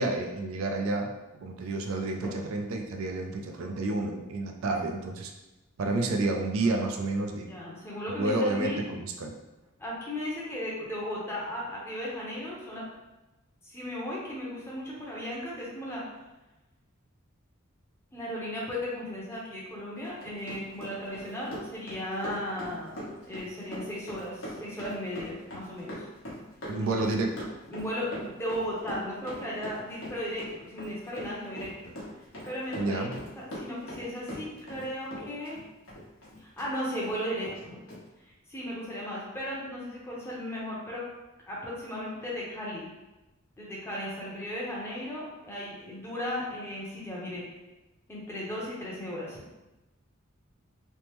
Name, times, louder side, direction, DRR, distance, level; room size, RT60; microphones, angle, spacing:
voice 1, 0.0-5.3 5.8-7.5 8.2-9.3 26.7-27.5 32.8-33.2, right 2 dB, 75° right, 3 dB, 0.4 m, -30 dB
voice 2, 7.5-8.8 9.8-12.8 13.6-16.0 18.1-26.1 27.7-31.9 32.4-33.0 33.4-35.6 36.4-37.8 38.5-41.0 41.5-42.9 43.6-47.4 48.1-49.4, equal, 10° left, -6 dB, 0.7 m, -36 dB
Run, 20.0-34.9 35.1-36.7 37.0-37.1 37.4-37.6 37.9-38.0, equal, 75° left, 1.0 m, -41 dB
3.3 x 2.0 x 2.9 m, 1.0 s
head